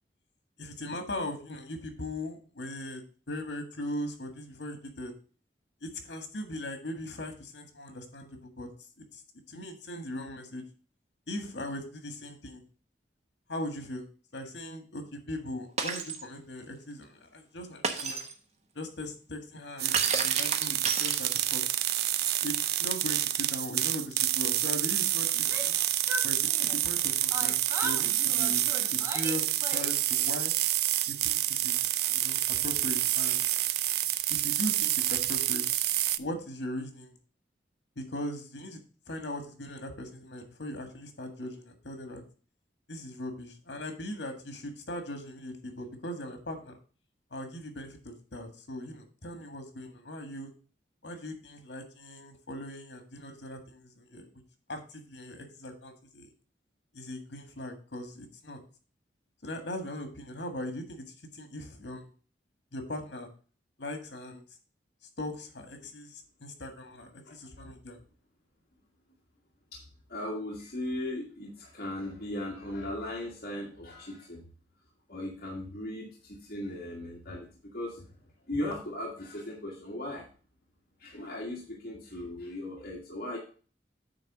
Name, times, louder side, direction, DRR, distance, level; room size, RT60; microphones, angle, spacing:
voice 1, 0.6-5.1 5.8-8.7 9.1-9.2 9.5-10.6 11.3-12.6 13.5-14.0 14.3-18.3 18.7-21.6 22.4-25.8 26.2-28.6 28.9-30.5 31.1-33.4 34.3-35.8 36.2-37.1 37.9-38.8 39.1-42.2 42.9-46.8 47.3-50.5 51.0-54.3 54.7-56.3 56.9-58.6 59.4-61.0 61.3-62.1 62.7-63.3 63.8-64.4 65.2-68.0, left 1 dB, 80° left, 6 dB, 1.7 m, -39 dB
Shatter, 15.8-16.2 17.8-18.3 19.9-21.6, right 5 dB, 40° right, 1.0 m, -31 dB
sound 1, 19.8-36.2, right 13 dB, 60° right, 0.4 m, -28 dB
Yell, 25.3-27.0 27.3-30.1, right 1 dB, 15° right, 1.0 m, -39 dB
voice 2, 70.1-74.4 75.1-78.0 78.5-80.3 81.0-83.4, left 1 dB, 55° left, -4 dB, 1.7 m, -37 dB
8.8 x 3.5 x 6.1 m, 0.38 s
head